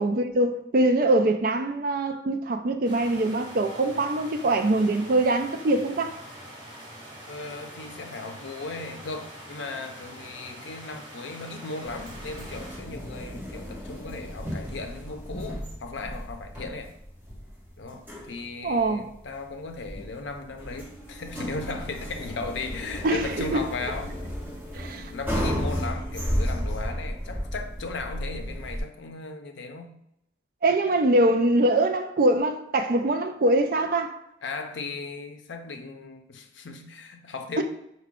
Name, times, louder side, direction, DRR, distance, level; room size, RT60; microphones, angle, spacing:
voice 1, 0.0-6.2 18.6-19.1 23.0-23.6 24.7-25.1 30.6-34.2 37.6-37.7, right 2 dB, 50° right, 0.4 m, -23 dB
sound 1, 2.8-12.8, right 1 dB, 25° right, 1.0 m, -44 dB
voice 2, 7.3-16.9 17.8-24.2 25.0-30.0 34.4-37.6, left 3 dB, 75° left, 0.5 m, -37 dB
sound 2, 11.8-28.8, equal, 10° right, 1.4 m, -34 dB
4.8 x 2.2 x 3.6 m
head